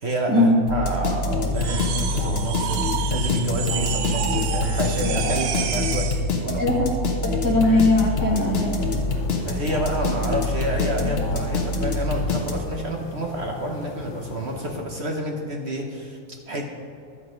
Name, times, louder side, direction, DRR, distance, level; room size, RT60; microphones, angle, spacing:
voice 1, 0.0-6.8 9.4-16.6, right 1 dB, 45° right, 2 dB, 0.9 m, -29 dB
sound 1, 0.7-12.9, left 2 dB, 40° left, 1.0 m, -25 dB
sound 2, 1.5-6.3, right 8 dB, 70° right, 1.3 m, -30 dB
voice 2, 6.6-6.9 7.2-8.7, left 2 dB, 10° right, -4 dB, 1.3 m, -19 dB
sound 3, 8.3-14.8, left 3 dB, 85° left, 1.7 m, -38 dB
11.0 x 7.8 x 5.1 m, 2.5 s
omnidirectional pair, 2.2 m